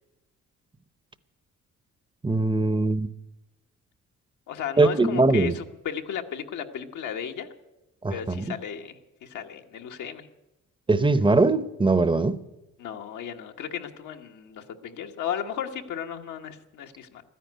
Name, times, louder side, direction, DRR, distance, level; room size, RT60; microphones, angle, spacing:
voice 1, 2.2-3.1 4.8-5.5 8.0-8.4 10.9-12.4, right 3 dB, 15° right, 0.7 m, -21 dB
voice 2, 4.5-7.5 8.1-10.3 12.8-17.2, left 8 dB, 75° left, 1.3 m, -35 dB
13.0 x 10.0 x 9.3 m
cardioid pair, 90°, 30 cm